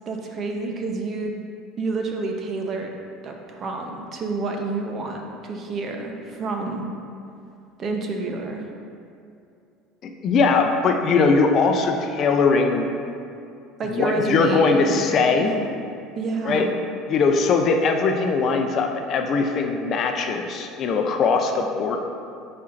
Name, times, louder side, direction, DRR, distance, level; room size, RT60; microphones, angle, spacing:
voice 1, 0.1-1.4 1.8-2.9 3.2-6.9 7.8-8.7 13.8-15.7 16.1-16.7, right 3 dB, 40° right, 2 dB, 0.8 m, -29 dB
voice 2, 10.0-12.9 13.9-15.5 16.4-16.7 17.1-22.0, left 4 dB, 45° left, 4 dB, 0.5 m, -20 dB
9.5 x 4.3 x 2.6 m, 2.5 s
supercardioid pair, 115°, 0 cm